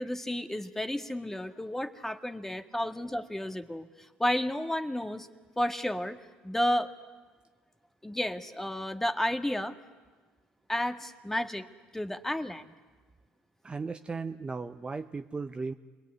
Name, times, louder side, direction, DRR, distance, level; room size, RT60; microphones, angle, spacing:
voice 1, 0.0-5.3 5.6-6.9 8.0-9.8 10.7-11.7 11.9-12.7, left 1 dB, 10° left, 7 dB, 1.8 m, -32 dB
voice 2, 13.6-15.7, right 4 dB, 25° right, 8 dB, 0.9 m, -36 dB
29.0 x 21.5 x 9.7 m, 1.4 s
supercardioid pair, 75°, 4 cm